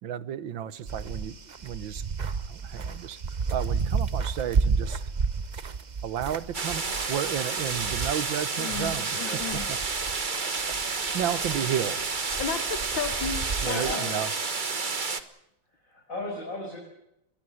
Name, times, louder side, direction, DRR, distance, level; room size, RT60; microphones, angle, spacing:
voice 1, 0.0-2.0 2.5-3.2 3.5-5.0 6.0-6.8 7.1-9.2 10.7-12.0 13.6-14.3, right 10 dB, 75° right, 16 dB, 1.8 m, -32 dB
sound 1, 0.8-9.0 9.4-13.9, right 5 dB, 50° right, 0.5 m, -32 dB
sound 2, 6.5-15.2, right 4 dB, 30° right, 1.2 m, -30 dB
voice 2, 8.6-9.7 12.4-14.2, left 7 dB, 75° left, 9 dB, 2.2 m, -34 dB
voice 3, 13.6-14.0 15.7-16.8, left 1 dB, 40° left, -1 dB, 6.3 m, -35 dB
22.5 x 20.0 x 7.9 m, 0.81 s
omnidirectional pair, 2.1 m